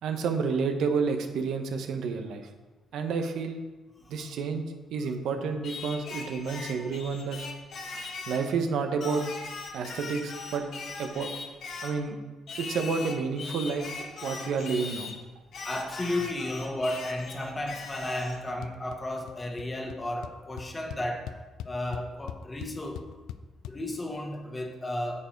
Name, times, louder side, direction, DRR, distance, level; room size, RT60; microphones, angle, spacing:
voice 1, 0.0-2.5 2.9-3.6 4.1-4.6 4.9-7.4 8.3-9.3 9.7-10.7 11.0-11.3 11.8-12.2 12.6-15.1, right 5 dB, 80° right, 5 dB, 1.0 m, -30 dB
Singing, 5.6-8.5 9.0-12.0 12.5-15.2 15.5-18.4, left 4 dB, 65° left, 1.3 m, -40 dB
voice 2, 15.6-21.3 21.6-23.0 23.7-25.2, left 1 dB, 20° left, 3 dB, 1.5 m, -33 dB
sound 1, 18.6-19.0 19.3-19.7 19.9-20.0 20.2-23.7, left 10 dB, 85° left, 0.4 m, -40 dB
8.9 x 6.9 x 4.6 m, 1.2 s
cardioid pair, 90°, 0 cm